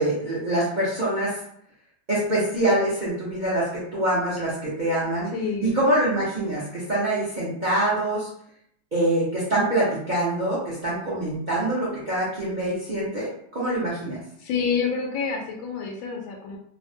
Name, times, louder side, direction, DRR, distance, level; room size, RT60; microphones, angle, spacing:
voice 1, 0.0-1.4 2.1-5.3 5.6-8.3 8.9-14.2, right 1 dB, 90° right, -7 dB, 0.4 m, -25 dB
voice 2, 5.3-5.8 14.4-16.6, left 5 dB, 85° left, -1 dB, 1.3 m, -28 dB
3.3 x 2.1 x 2.6 m, 0.69 s
omnidirectional pair, 2.0 m